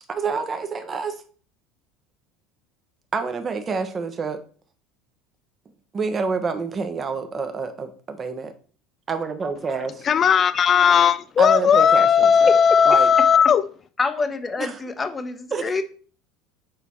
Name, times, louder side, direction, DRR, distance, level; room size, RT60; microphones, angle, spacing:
voice 1, 0.1-1.1 3.1-4.4 5.9-8.5 9.1-10.1 11.4-12.5 12.9-13.1 14.6-14.8 15.5-15.7, right 4 dB, 30° right, 1.0 m, -27 dB
voice 2, 10.0-13.6, left 7 dB, 40° left, 0.3 m, -16 dB
voice 3, 14.0-15.8, left 4 dB, 25° left, 1.0 m, -27 dB
6.7 x 4.0 x 4.4 m
hypercardioid pair, 85°, 0 cm